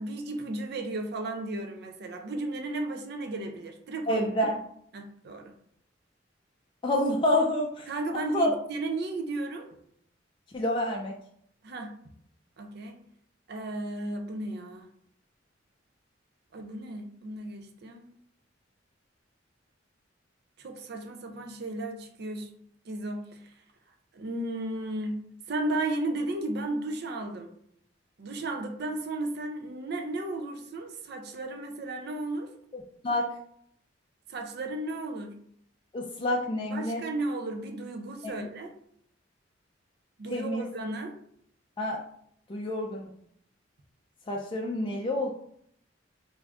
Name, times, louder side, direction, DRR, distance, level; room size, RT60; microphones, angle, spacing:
voice 1, 0.0-4.3 4.9-5.5 7.9-9.7 11.6-11.9 12.6-13.0 13.5-14.9 16.5-18.1 20.6-22.5 22.9-23.5 24.1-25.2 25.5-27.5 28.2-32.5 34.3-35.3 36.7-38.7 40.2-41.1, right 2 dB, 60° right, 5 dB, 0.5 m, -34 dB
voice 2, 4.1-4.6 6.8-7.9 8.3-8.5 10.5-11.1 32.7-33.3 35.9-37.0 38.2-38.5 40.3-40.6 41.8-42.0 42.5-43.1 44.3-45.3, left 1 dB, 25° left, -1 dB, 0.4 m, -28 dB
3.4 x 2.6 x 3.4 m, 0.67 s
head